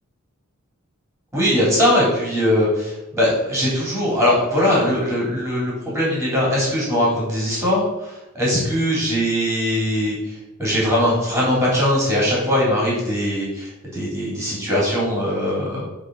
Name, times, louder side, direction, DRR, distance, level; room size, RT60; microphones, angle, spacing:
voice 1, 1.3-15.8, equal, 5° right, -6 dB, 3.5 m, -21 dB
10.5 x 4.1 x 5.6 m, 1.0 s
head